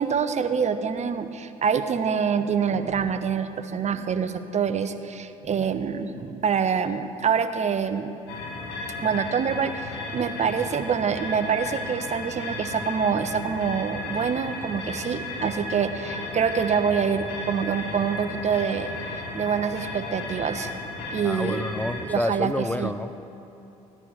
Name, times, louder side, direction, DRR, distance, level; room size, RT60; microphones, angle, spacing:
voice 1, 0.0-8.1 9.0-18.9 19.3-20.7 21.1-21.6 22.0-22.9, right 6 dB, 40° right, 10 dB, 0.8 m, -26 dB
sound 1, 8.3-22.1, left 2 dB, 75° left, 1.8 m, -34 dB
voice 2, 21.2-23.3, left 1 dB, 10° left, 10 dB, 0.4 m, -29 dB
15.0 x 9.7 x 5.0 m, 2.9 s
hypercardioid pair, 55°, 18 cm